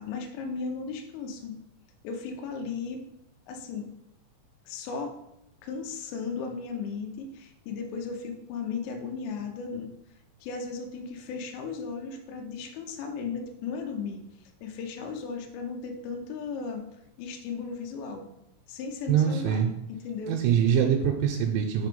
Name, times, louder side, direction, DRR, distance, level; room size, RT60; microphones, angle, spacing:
voice 1, 0.0-1.6 2.0-3.0 3.5-3.9 4.7-5.1 5.6-9.9 10.4-14.2 14.6-16.8 17.2-18.3 18.7-19.7 20.0-20.4, left 5 dB, 80° left, 2 dB, 2.8 m, -35 dB
voice 2, 19.1-19.7 20.3-21.9, right 8 dB, 90° right, 1 dB, 2.9 m, -24 dB
6.8 x 3.1 x 5.2 m, 0.84 s
omnidirectional pair, 5.2 m